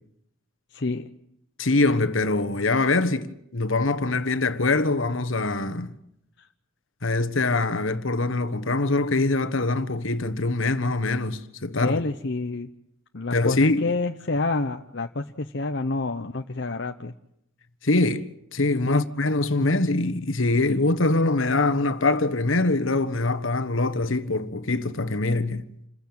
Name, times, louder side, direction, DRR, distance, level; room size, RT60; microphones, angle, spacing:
voice 1, 0.7-1.1 6.4-6.5 11.8-12.7 13.1-17.1 18.9-19.0, left 3 dB, 55° left, 0.8 m, -28 dB
voice 2, 1.6-5.9 7.0-12.0 13.3-13.9 17.8-25.7, left 2 dB, 70° left, 1.4 m, -23 dB
28.5 x 15.5 x 8.9 m
head